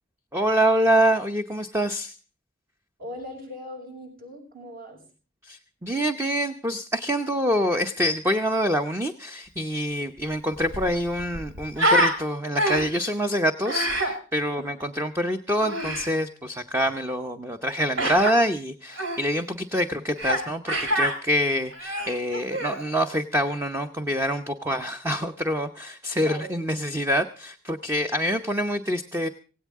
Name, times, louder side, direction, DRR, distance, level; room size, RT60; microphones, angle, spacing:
voice 1, 0.3-2.1 5.4-29.3, equal, 10° right, 7 dB, 0.8 m, -26 dB
voice 2, 3.0-5.0 14.6-15.0 26.2-26.6, equal, 50° right, 3 dB, 6.5 m, -39 dB
Human voice, 10.2-10.3 10.5-12.2 12.6-13.1 13.7-14.1 15.6-16.1 18.0-18.3 19.0-19.2 20.2-20.4 20.7-21.1 21.7-22.8, right 1 dB, 70° right, 4.0 m, -25 dB
17.5 x 17.0 x 3.6 m, 0.37 s
head